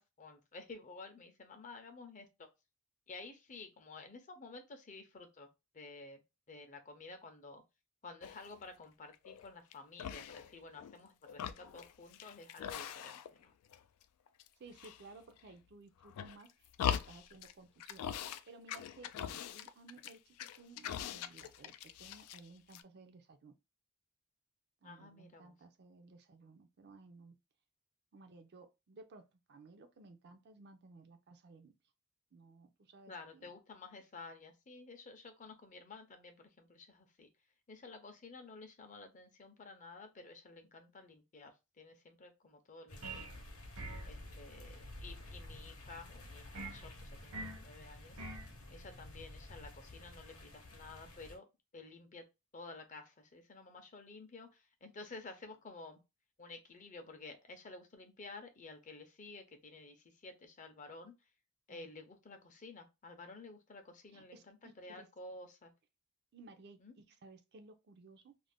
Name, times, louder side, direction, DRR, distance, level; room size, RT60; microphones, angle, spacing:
voice 1, 0.0-2.5 3.1-5.5 5.7-6.2 6.5-7.6 8.0-13.5 24.8-25.5 33.1-37.3 37.7-43.3 44.0-48.2 48.7-51.5 51.7-52.2 52.5-56.0 56.4-61.1 61.7-65.7 66.8-66.9, left 3 dB, 35° left, 0.5 m, -52 dB
sound 1, 8.2-8.6 9.1-9.7 10.0-11.0 11.2-13.4 13.7-14.5 14.7-15.5 16.0-17.5 17.8-18.4 18.7-22.4 22.7-22.8, left 9 dB, 90° left, 0.3 m, -42 dB
voice 2, 14.6-23.5 24.8-27.4 28.1-31.7 32.3-33.5 61.7-61.9 64.1-65.1 66.3-68.3, right 3 dB, 50° right, 0.4 m, -57 dB
sound 2, 42.9-51.4, left 1 dB, 60° left, 0.8 m, -51 dB
sound 3, 43.0-43.4 43.8-44.1 46.5-46.8 47.3-47.6 48.2-48.5, right 2 dB, 75° right, 0.7 m, -44 dB
2.5 x 2.0 x 3.4 m
head